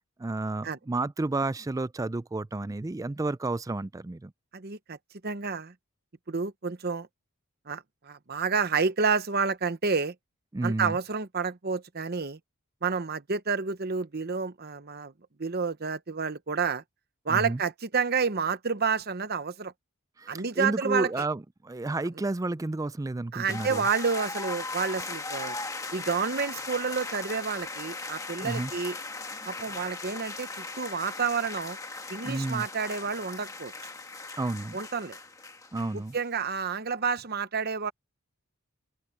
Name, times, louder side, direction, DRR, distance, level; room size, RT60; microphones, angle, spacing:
voice 1, 0.2-4.3 10.5-11.0 17.3-17.6 20.2-23.8 28.4-28.7 32.2-32.7 34.4-34.8 35.7-36.1, right 2 dB, 15° right, 0.3 m, -31 dB
voice 2, 4.5-5.0 5.2-5.7 6.3-7.1 7.7-10.1 10.6-12.4 12.8-15.1 15.4-16.8 17.2-19.7 20.3-21.2 23.3-25.6 25.9-29.0 29.5-31.8 32.1-33.7 34.7-35.2 35.9-37.9, right 5 dB, 45° right, 0.9 m, -29 dB
sound 1, 23.5-36.2, left 3 dB, 15° left, 1.4 m, -38 dB
open air
head